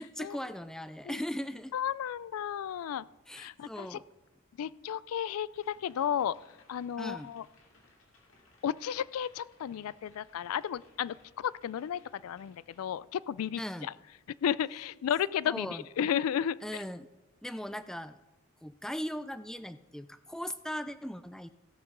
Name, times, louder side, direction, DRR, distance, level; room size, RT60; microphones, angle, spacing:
voice 1, 0.0-1.7 3.3-4.0 7.0-7.3 13.6-13.9 15.5-15.8 16.6-17.1 17.4-18.2 18.6-21.5, equal, 5° left, 12 dB, 0.3 m, -38 dB
voice 2, 1.7-3.0 3.3-4.0 4.6-7.5 8.6-13.9 14.4-16.8, left 9 dB, 85° left, 20 dB, 0.3 m, -33 dB
sound 1, 5.5-12.8, left 3 dB, 65° left, 2.4 m, -64 dB
16.5 x 5.9 x 5.3 m, 1.1 s
head